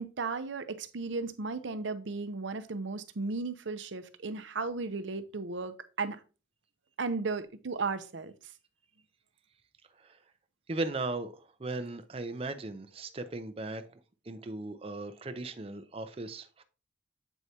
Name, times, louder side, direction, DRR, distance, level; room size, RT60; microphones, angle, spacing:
voice 1, 0.0-6.2 7.0-8.3, right 4 dB, 80° right, 0.6 m, -35 dB
voice 2, 10.7-13.9 14.3-16.6, right 2 dB, 30° right, 0.5 m, -37 dB
7.9 x 4.7 x 2.8 m
head